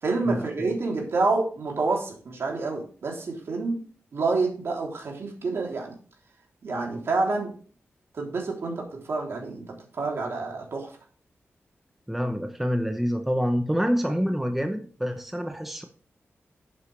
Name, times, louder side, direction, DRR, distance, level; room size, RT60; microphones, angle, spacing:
voice 1, 0.0-3.8 4.1-6.0 6.6-7.5 8.1-10.9, right 3 dB, 65° right, 0 dB, 3.3 m, -28 dB
voice 2, 12.1-15.8, equal, 5° right, 5 dB, 0.8 m, -27 dB
10.0 x 8.4 x 3.3 m, 0.41 s
wide cardioid pair, 170°, 5 cm